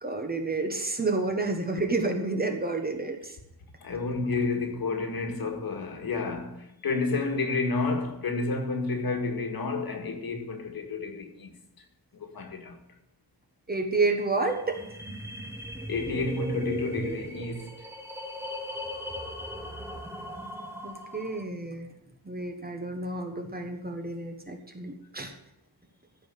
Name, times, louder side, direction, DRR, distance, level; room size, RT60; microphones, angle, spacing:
voice 1, 0.0-3.4 13.7-14.8 20.8-21.9 22.2-25.3, right 3 dB, 25° right, 1.4 m, -30 dB
voice 2, 3.8-11.5 11.8-11.9 12.1-12.8 15.9-17.9, left 3 dB, 60° left, 2.0 m, -30 dB
sound 1, 14.4-21.4, equal, 5° right, 1.2 m, -38 dB
14.0 x 5.5 x 8.4 m
wide cardioid pair, 170°, 40 cm